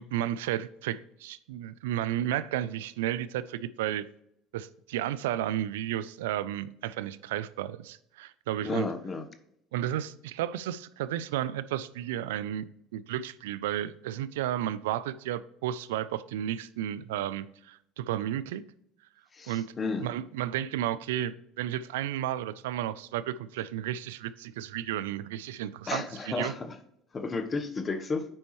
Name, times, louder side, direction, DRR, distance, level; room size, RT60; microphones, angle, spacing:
voice 1, 0.0-4.0 4.5-8.9 9.7-12.6 12.9-18.6 19.5-19.7 20.0-26.5, right 12 dB, 90° right, 0.4 m, -33 dB
voice 2, 8.6-9.3 19.3-20.1 25.9-26.8 27.1-28.3, left 4 dB, 30° left, 1.0 m, -32 dB
8.8 x 5.3 x 3.1 m
supercardioid pair, 95°, 0 cm